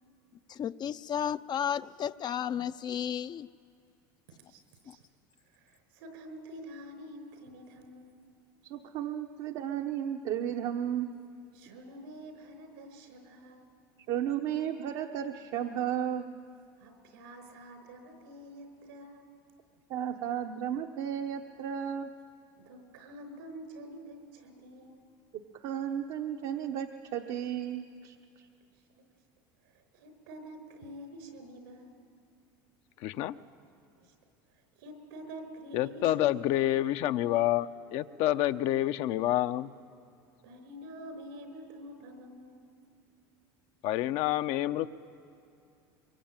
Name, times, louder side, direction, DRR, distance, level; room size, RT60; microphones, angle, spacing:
voice 1, 0.5-3.5 4.9-5.0, left 9 dB, 35° left, 13 dB, 0.5 m, -33 dB
voice 2, 4.3-5.1 5.4-8.2 11.5-13.7 16.8-19.3 22.6-25.0 28.9-29.0 29.6-32.0 34.0-34.1 34.5-36.7 40.4-42.7, equal, 80° right, 7 dB, 5.1 m, -48 dB
voice 3, 8.6-11.1 14.1-16.3 19.9-22.1 25.6-28.5, right 9 dB, 65° right, 4 dB, 1.1 m, -34 dB
voice 4, 33.0-33.3 35.7-39.7 43.8-44.9, left 14 dB, 60° left, 10 dB, 0.8 m, -28 dB
23.5 x 22.5 x 9.0 m, 2.6 s
supercardioid pair, 100°, 12 cm